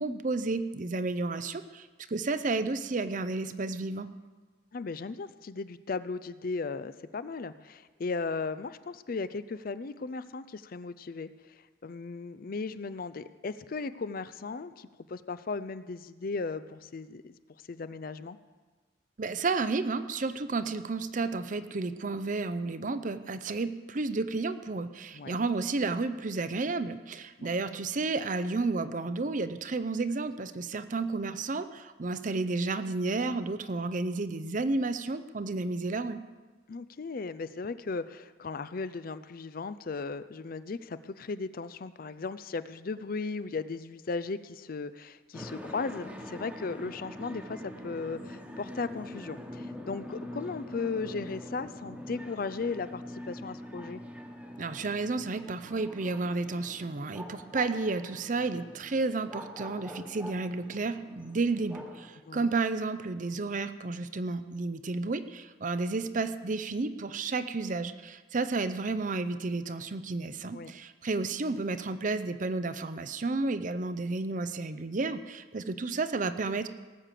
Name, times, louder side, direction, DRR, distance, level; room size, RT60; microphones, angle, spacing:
voice 1, 0.0-4.1 19.2-36.2 54.6-76.7, right 3 dB, 45° right, 11 dB, 0.6 m, -32 dB
voice 2, 4.7-17.3 17.7-18.4 25.1-25.4 27.4-27.5 36.7-54.0 62.2-62.5 70.5-70.7, left 4 dB, 50° left, 13 dB, 0.5 m, -36 dB
sound 1, 45.3-62.1, left 1 dB, 5° right, 1.2 m, -44 dB
18.0 x 6.6 x 7.6 m, 1.3 s
head